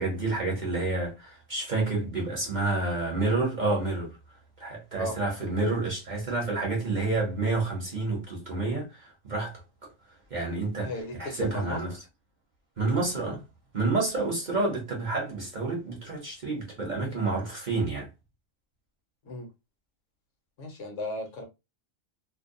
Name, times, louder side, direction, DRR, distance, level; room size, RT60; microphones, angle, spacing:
voice 1, 0.0-4.2 4.6-9.6 10.3-10.9 11.2-11.9 12.8-13.4 13.7-18.1, right 3 dB, 40° right, 0.8 m, -29 dB
voice 2, 10.8-11.8 19.2-19.5 20.6-21.4, left 2 dB, 70° left, 1.1 m, -35 dB
2.6 x 2.1 x 2.6 m
omnidirectional pair, 1.4 m